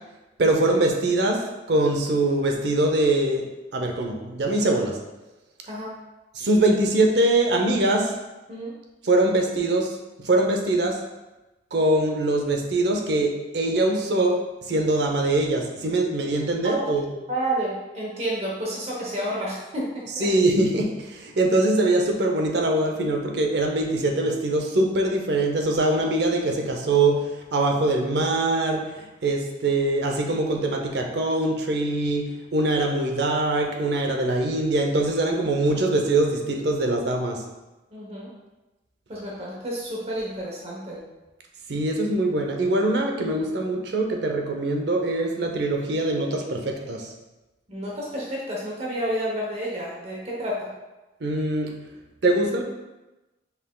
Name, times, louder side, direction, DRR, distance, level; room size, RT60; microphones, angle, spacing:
voice 1, 0.4-1.4 1.7-3.5 3.7-5.0 6.3-8.2 9.0-11.0 11.7-17.1 20.2-37.4 41.7-47.1 51.2-51.7 52.2-52.6, right 2 dB, 65° right, 2 dB, 0.6 m, -23 dB
voice 2, 17.3-20.3 37.9-38.3 39.1-41.0 47.7-50.7, right 1 dB, 35° right, -4 dB, 0.9 m, -30 dB
5.6 x 3.5 x 2.2 m, 1.1 s
head